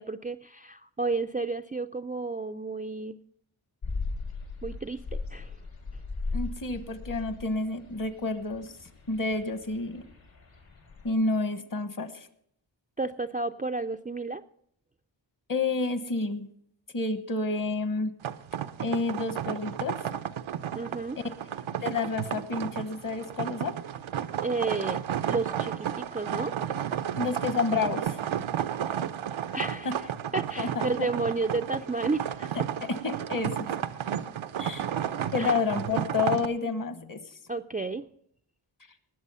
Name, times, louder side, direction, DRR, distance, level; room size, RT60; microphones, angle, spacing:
voice 1, 0.0-3.2 4.6-5.5 13.0-14.4 20.7-21.2 24.4-25.0 25.3-26.5 29.5-29.9 30.3-32.5 35.4-35.5 37.5-38.0, right 3 dB, 20° right, 8 dB, 0.4 m, -31 dB
sound 1, 3.8-11.1, left 3 dB, 75° left, 3.7 m, -38 dB
voice 2, 6.3-8.7 9.1-10.0 11.0-12.3 15.5-16.5 16.9-18.1 18.8-20.0 21.8-23.7 27.1-28.2 29.8-29.9 30.6-30.8 32.9-33.5 34.6-34.9 35.3-37.2, left 3 dB, 45° left, 10 dB, 1.3 m, -29 dB
sound 2, 18.2-36.5, right 9 dB, 80° right, 0.7 m, -32 dB
19.5 x 7.3 x 5.5 m, 0.67 s
wide cardioid pair, 95°, 47 cm